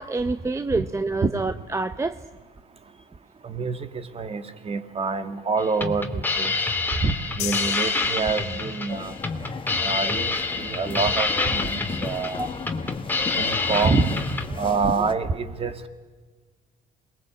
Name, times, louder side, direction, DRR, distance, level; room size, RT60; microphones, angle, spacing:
voice 1, 0.0-2.2 12.4-12.5 12.8-12.9, right 3 dB, 15° right, 10 dB, 0.8 m, -27 dB
voice 2, 3.4-3.8 4.1-6.5 7.0-9.1 9.8-12.4 13.4-14.1 14.6-15.9, right 4 dB, 35° right, 9 dB, 2.1 m, -26 dB
sound 1, 5.6-14.5, left 3 dB, 10° left, 2.6 m, -27 dB
sound 2, 7.4-9.0, left 16 dB, 80° left, 1.0 m, -35 dB
sound 3, 8.9-15.1, left 5 dB, 30° left, 1.3 m, -35 dB
27.5 x 21.5 x 8.6 m, 1.4 s
cardioid pair, 110°, 17 cm